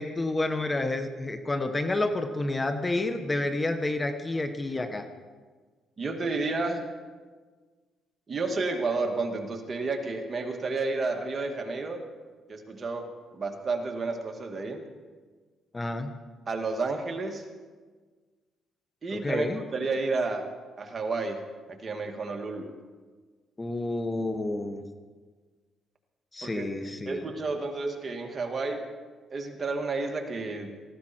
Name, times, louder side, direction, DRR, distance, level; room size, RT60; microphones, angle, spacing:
voice 1, 0.0-5.1 15.7-16.1 19.1-19.6 23.6-24.8 26.3-27.2, left 2 dB, 20° left, 7 dB, 1.2 m, -29 dB
voice 2, 6.0-6.8 8.3-12.0 12.5-13.1 13.3-14.8 16.5-17.4 19.0-20.5 20.8-21.4 21.8-22.7 26.4-26.7 27.1-28.9 29.3-30.8, right 3 dB, 35° right, 3 dB, 2.3 m, -31 dB
18.5 x 15.5 x 4.5 m, 1.5 s
cardioid pair, 90°, 0 cm